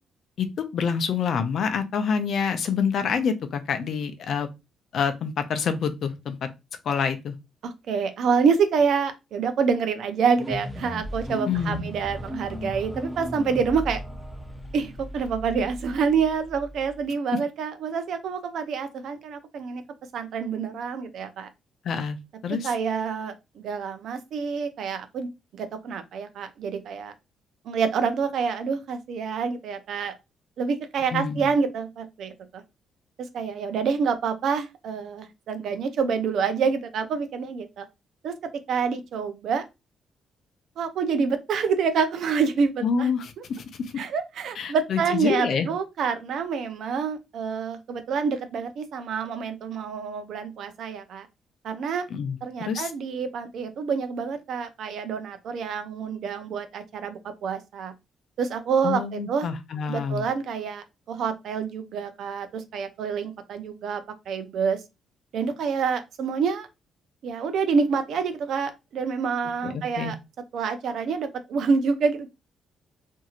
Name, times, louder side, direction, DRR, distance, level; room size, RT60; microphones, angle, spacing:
voice 1, 0.4-4.5 4.9-6.5 6.9-7.3 11.5-11.9 21.8-22.2 22.4-22.7 31.1-31.5 42.8-43.9 44.6-45.7 52.1-52.9 58.8-60.3 69.6-70.1, left 6 dB, 65° left, 0.5 m, -27 dB
voice 2, 7.6-14.0 14.7-19.8 20.1-21.5 22.5-27.1 27.7-30.1 30.6-32.3 33.2-37.9 38.2-38.3 38.7-39.6 40.8-43.4 44.0-51.3 51.6-52.0 52.4-57.9 58.4-59.5 59.9-64.8 65.3-66.7 67.2-70.2 70.5-72.3, right 5 dB, 70° right, 0.5 m, -27 dB
sound 1, 10.3-17.0, equal, ahead, 0.6 m, -36 dB
2.9 x 2.6 x 2.4 m
cardioid pair, 90°, 0 cm